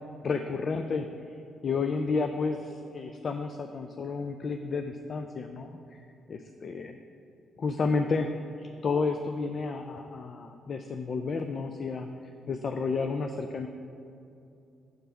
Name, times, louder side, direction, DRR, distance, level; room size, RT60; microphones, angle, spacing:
voice 1, 0.2-1.1 1.6-5.8 6.3-7.0 7.6-8.3 8.6-12.1 12.5-13.7, left 4 dB, 45° left, 6 dB, 0.3 m, -31 dB
7.8 x 3.4 x 6.0 m, 2.7 s
cardioid pair, 90°, 0 cm